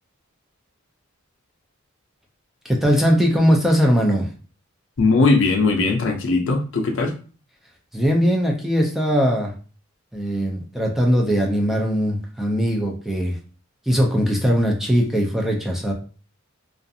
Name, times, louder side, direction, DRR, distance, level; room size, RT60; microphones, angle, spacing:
voice 1, 2.6-4.3 7.9-9.5 10.1-13.4 13.9-15.9, equal, ahead, -1 dB, 0.3 m, -20 dB
voice 2, 5.0-7.1, left 3 dB, 60° left, 4 dB, 0.5 m, -19 dB
2.4 x 2.3 x 2.6 m, 0.38 s
head